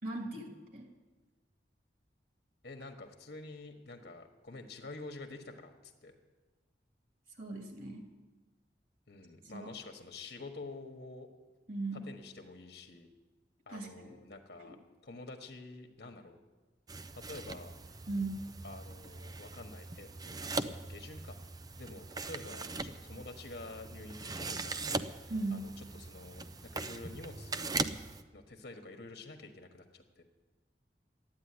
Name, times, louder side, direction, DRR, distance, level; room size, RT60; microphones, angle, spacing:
voice 1, 0.0-0.9 7.4-8.0 9.5-9.7 11.7-12.1 13.7-14.1 14.6-14.8 18.1-18.5 25.3-25.7, right 2 dB, 55° right, 2 dB, 2.8 m, -38 dB
voice 2, 2.6-6.1 9.1-11.3 11.9-13.1 13.7-14.8 15.0-16.4 17.1-17.8 18.6-21.4 21.8-27.8 28.3-30.2, left 3 dB, 65° left, 5 dB, 1.4 m, -48 dB
sound 1, 16.9-28.2, right 3 dB, 20° right, 0.5 m, -40 dB
13.5 x 9.5 x 9.7 m, 1.3 s
head